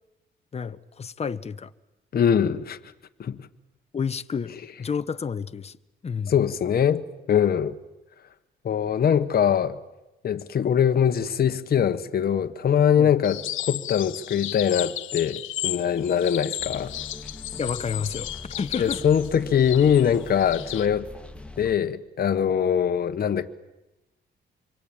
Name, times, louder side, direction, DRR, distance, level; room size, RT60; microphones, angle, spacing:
voice 1, 0.5-1.7 3.9-4.5 4.8-5.8 6.0-6.3 13.0-13.1 17.6-19.0, left 6 dB, 30° left, 1.0 m, -30 dB
voice 2, 2.1-2.8 3.2-3.4 6.3-7.8 8.6-9.8 10.2-16.9 18.8-21.1 21.6-23.5, left 8 dB, 50° left, 1.3 m, -22 dB
sound 1, 13.2-20.9, left 14 dB, 80° left, 1.1 m, -34 dB
sound 2, 16.6-21.7, left 2 dB, 5° left, 2.9 m, -42 dB
26.5 x 24.0 x 8.9 m
cardioid pair, 90°, 20 cm